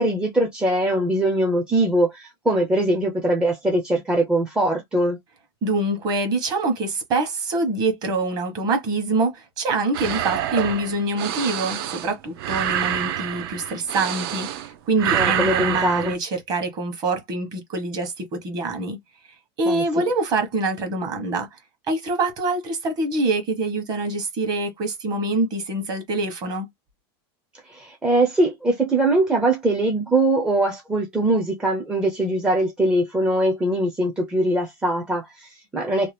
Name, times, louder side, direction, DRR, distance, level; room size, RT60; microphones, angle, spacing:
voice 1, 0.0-5.2 15.1-16.1 19.7-19.8 27.7-36.1, right 1 dB, 5° right, 0.4 m, -22 dB
voice 2, 5.6-19.0 19.6-21.6 21.9-26.7, right 2 dB, 30° right, 1.1 m, -25 dB
sound 1, 9.9-14.7 15.0-16.1, right 11 dB, 65° right, 0.6 m, -26 dB
2.8 x 2.2 x 3.2 m
supercardioid pair, 165°, 13 cm